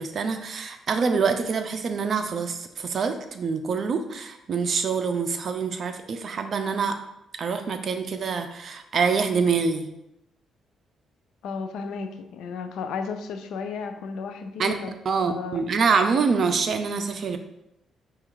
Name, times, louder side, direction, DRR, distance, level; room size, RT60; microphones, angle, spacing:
voice 1, 0.0-7.0 7.4-9.8 14.6-14.7 15.1-17.4, right 5 dB, 50° right, 7 dB, 0.5 m, -25 dB
voice 2, 11.4-15.6, left 5 dB, 80° left, 7 dB, 0.4 m, -34 dB
4.7 x 2.4 x 4.5 m, 0.86 s
cardioid pair, 90°, 0 cm